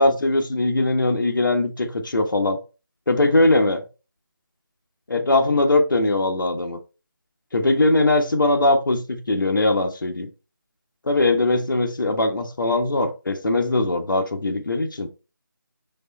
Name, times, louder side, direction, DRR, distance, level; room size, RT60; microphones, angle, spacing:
voice 1, 0.0-2.6 3.1-3.8 5.1-6.8 7.5-10.3 11.0-15.1, left 2 dB, 70° left, 1.0 m, -20 dB
4.5 x 2.9 x 3.9 m
figure-of-eight pair, 175°, 11 cm